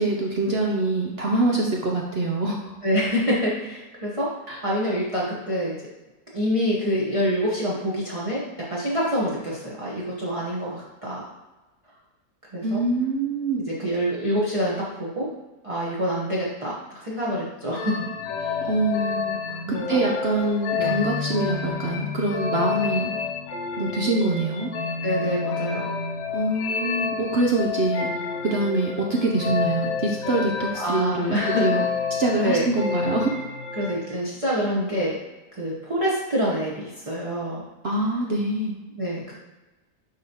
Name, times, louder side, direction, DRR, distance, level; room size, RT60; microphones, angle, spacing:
voice 1, 0.0-2.7 4.5-4.6 12.6-13.6 18.6-19.6 19.9-23.1 23.8-24.7 26.3-28.1 28.4-31.8 32.2-33.3 37.8-38.7, right 2 dB, 65° right, -1 dB, 0.6 m, -24 dB
voice 2, 2.8-4.3 4.6-5.8 6.3-8.4 8.7-11.2 12.5-12.8 13.6-15.3 15.6-18.1 18.4-18.5 19.6-20.0 20.7-20.9 25.0-25.9 30.7-31.6 32.4-32.7 33.8-35.2 35.5-37.6 38.9-39.4, equal, 25° right, -7 dB, 0.9 m, -26 dB
sound 1, 17.8-34.2, left 6 dB, 65° left, 0.9 m, -29 dB
9.7 x 3.4 x 2.9 m, 1.1 s
omnidirectional pair, 1.8 m